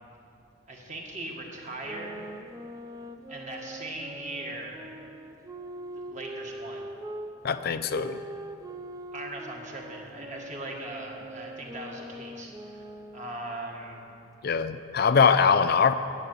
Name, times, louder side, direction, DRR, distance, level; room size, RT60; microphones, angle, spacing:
voice 1, 0.7-2.3 3.3-4.8 6.1-6.8 9.1-12.9 13.1-14.0, right 2 dB, 40° right, 0 dB, 1.8 m, -39 dB
sound 1, 1.7-7.3 7.9-13.5, right 1 dB, 15° right, 0.5 m, -42 dB
voice 2, 7.4-8.2 14.4-16.0, left 6 dB, 50° left, 10 dB, 0.4 m, -22 dB
11.0 x 8.1 x 9.2 m, 2.7 s
head